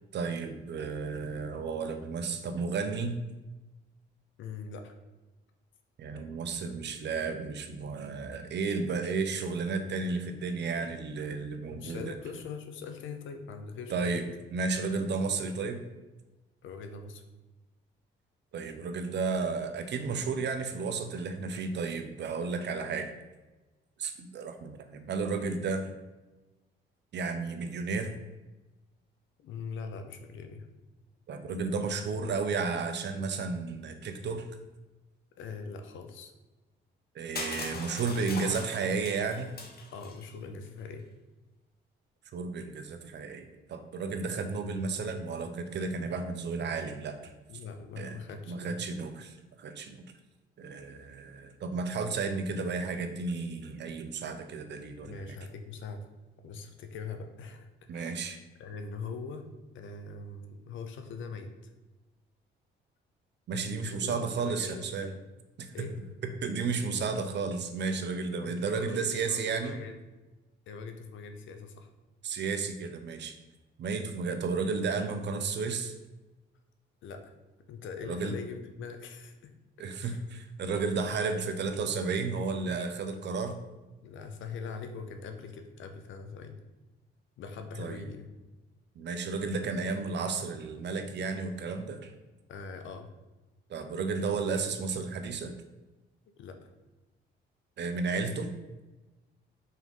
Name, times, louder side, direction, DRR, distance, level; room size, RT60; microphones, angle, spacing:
voice 1, 0.1-3.2 6.0-12.2 13.9-14.2 14.5-15.8 18.5-23.1 24.0-25.9 27.1-28.1 31.3-34.5 37.1-39.5 42.3-47.2 48.0-48.2 48.5-50.0 50.6-55.2 57.9-58.4 63.5-65.1 65.6-65.9 66.2-69.7 72.2-73.4 73.8-75.9 78.0-78.3 79.8-83.6 87.8-88.0 89.0-92.1 93.7-95.6 97.8-98.5, right 4 dB, 60° right, 7 dB, 0.8 m, -33 dB
voice 2, 4.4-4.9 11.7-14.2 16.6-17.2 29.4-30.7 35.4-36.3 39.9-41.0 47.5-48.9 55.0-56.0 56.4-58.2 58.6-59.5 59.7-61.5 63.9-64.8 65.7-65.9 68.3-70.0 70.7-71.9 77.0-77.3 77.7-79.5 80.0-80.2 80.6-80.8 83.3-83.4 84.0-86.6 87.4-88.3 92.5-93.1 96.4-96.6, left 5 dB, 75° left, 6 dB, 0.9 m, -42 dB
Crushing, 37.4-40.3, left 3 dB, 50° left, 1.2 m, -40 dB
5.6 x 3.7 x 5.4 m, 1.1 s
cardioid pair, 90°, 20 cm